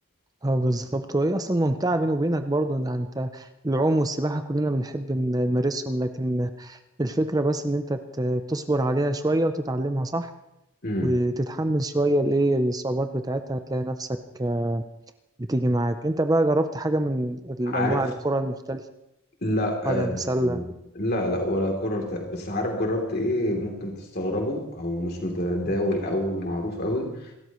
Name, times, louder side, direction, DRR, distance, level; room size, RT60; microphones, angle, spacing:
voice 1, 0.4-10.3 11.0-14.1 14.4-14.8 15.4-18.8 19.9-20.6, right 1 dB, 20° right, 8 dB, 0.6 m, -25 dB
voice 2, 17.7-18.0 19.4-20.6 20.9-27.3, left 1 dB, 50° left, 1 dB, 3.2 m, -27 dB
27.5 x 13.5 x 3.1 m, 0.85 s
head